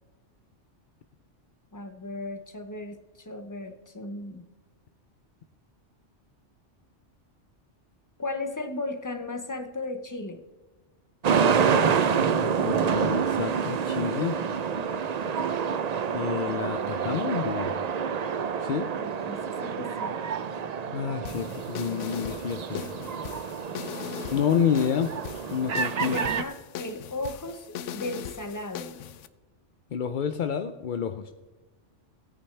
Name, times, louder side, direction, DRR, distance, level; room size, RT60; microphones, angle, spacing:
voice 1, 1.7-4.4 8.2-10.5 19.0-20.2 26.0-29.0, left 2 dB, 20° left, 7 dB, 0.7 m, -36 dB
sound 1, 11.2-26.4, right 6 dB, 50° right, 0.5 m, -28 dB
voice 2, 12.3-14.4 16.1-17.7 18.6-18.9 20.9-22.8 24.3-25.1 25.5-26.2 29.9-31.3, left 8 dB, 55° left, 8 dB, 0.6 m, -29 dB
sound 2, 21.3-29.3, left 9 dB, 85° left, 0.9 m, -39 dB
17.0 x 8.9 x 3.3 m, 1.2 s
omnidirectional pair, 1.2 m